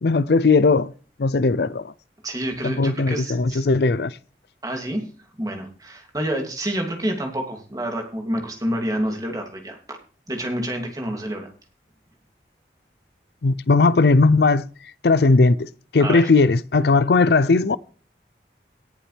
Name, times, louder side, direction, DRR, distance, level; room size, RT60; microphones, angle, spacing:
voice 1, 0.0-0.9 1.2-1.9 2.6-4.2 13.4-14.7 15.0-17.8, left 3 dB, 70° left, 0.5 m, -18 dB
voice 2, 2.2-3.6 4.6-5.1 5.4-10.0 10.3-11.5 16.0-16.3, right 1 dB, 20° right, 2.7 m, -28 dB
18.0 x 7.2 x 3.4 m
head